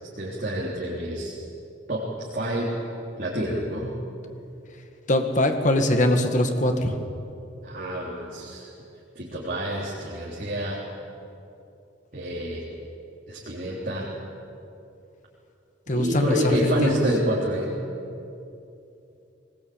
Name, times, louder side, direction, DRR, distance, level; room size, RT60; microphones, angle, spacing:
voice 1, 0.2-1.4 1.9-2.8 3.2-3.9 7.6-8.7 9.2-10.8 12.1-12.6 13.3-14.1 15.9-17.7, equal, 45° right, -5 dB, 3.6 m, -28 dB
voice 2, 5.1-7.0 15.9-17.0, left 1 dB, 40° left, 5 dB, 1.9 m, -22 dB
22.5 x 19.5 x 8.7 m, 2.7 s
head